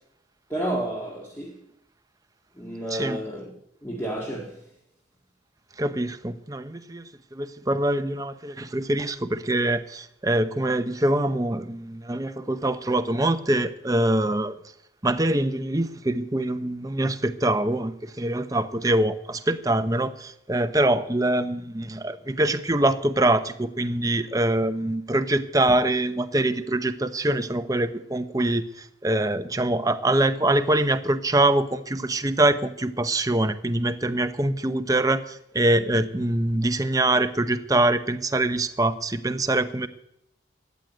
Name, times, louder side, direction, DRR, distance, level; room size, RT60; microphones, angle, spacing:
voice 1, 0.5-1.6 2.6-3.5 3.8-4.6, right 1 dB, 10° left, 2.0 m, -31 dB
voice 2, 5.8-7.0 7.3-14.5 15.0-39.9, right 1 dB, 20° right, 0.8 m, -24 dB
14.0 x 9.3 x 9.3 m
head